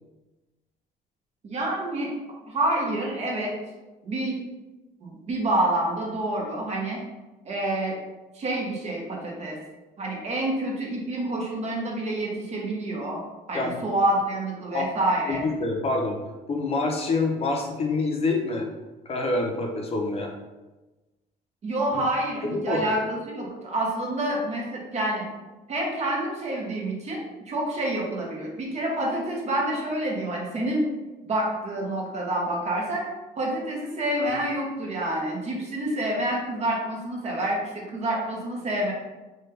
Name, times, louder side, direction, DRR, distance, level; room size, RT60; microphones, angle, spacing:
voice 1, 1.4-2.1 2.5-3.5 4.0-4.4 5.0-7.0 7.5-8.0 8.3-9.6 10.0-13.2 13.5-15.4 21.6-25.2 25.7-30.9 31.3-33.1 33.4-38.9, right 1 dB, 40° right, -2 dB, 0.8 m, -28 dB
voice 2, 15.3-16.2 16.5-18.7 19.1-20.3 21.9-22.0 22.5-22.8 34.3-34.4, left 3 dB, 35° left, 1 dB, 0.5 m, -26 dB
3.2 x 2.3 x 3.1 m, 1.1 s
cardioid pair, 110°, 17 cm